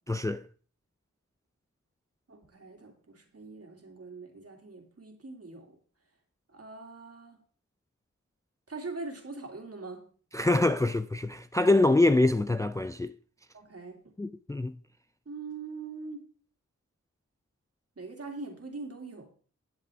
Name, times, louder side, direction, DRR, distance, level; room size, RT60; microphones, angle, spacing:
voice 1, 0.1-0.4 10.3-13.1 14.2-14.8, left 2 dB, 10° left, 0.4 m, -25 dB
voice 2, 2.3-5.8 6.5-7.4 8.7-10.1 13.5-14.1 15.3-16.2 18.0-19.3, right 3 dB, 50° right, 2.3 m, -42 dB
11.0 x 7.5 x 3.4 m
cardioid pair, 45°, 30 cm